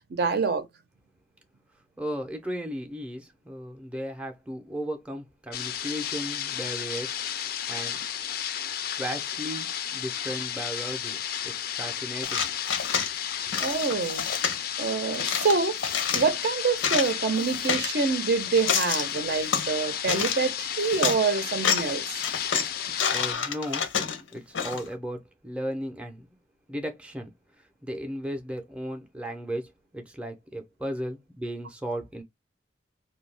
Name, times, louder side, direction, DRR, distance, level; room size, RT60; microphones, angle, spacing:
voice 1, 0.1-0.7 13.6-14.2 14.8-22.0, right 4 dB, 55° right, 0.5 m, -26 dB
voice 2, 2.0-7.2 7.7-8.0 9.0-12.5 23.1-23.9 24.3-26.3 26.7-27.3 27.8-32.2, equal, 5° right, 0.5 m, -35 dB
sound 1, 5.5-23.3, left 9 dB, 50° left, 0.4 m, -33 dB
sound 2, 12.2-13.1 13.5-14.6 15.1-16.3 16.7-17.9 18.4-19.7 20.1-20.5 20.8-21.2 21.5-21.9 22.2-24.9, left 7 dB, 90° left, 0.6 m, -28 dB
2.6 x 2.3 x 3.2 m
head